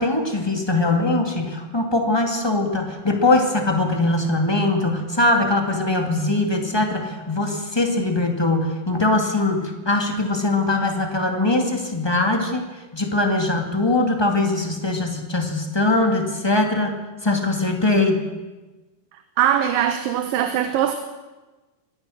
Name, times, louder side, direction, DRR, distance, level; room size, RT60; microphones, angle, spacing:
voice 1, 0.0-17.0 17.2-18.2, left 2 dB, 10° left, 3 dB, 1.5 m, -21 dB
voice 2, 19.4-20.9, right 10 dB, 85° right, 8 dB, 2.8 m, -21 dB
24.0 x 17.0 x 6.4 m, 1.2 s
omnidirectional pair, 3.9 m